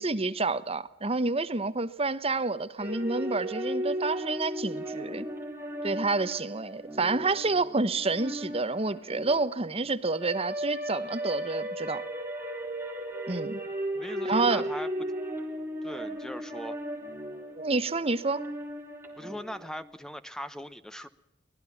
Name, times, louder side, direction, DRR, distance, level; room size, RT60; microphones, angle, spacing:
voice 1, 0.0-5.3 5.8-12.0 13.3-13.6 14.2-14.6 17.6-18.4, right 3 dB, 35° right, 1.0 m, -29 dB
sound 1, 2.8-19.8, equal, 15° right, 3.9 m, -36 dB
voice 2, 13.9-14.9 15.8-16.8 19.2-21.1, equal, 5° left, 0.9 m, -39 dB
24.0 x 19.5 x 7.1 m
head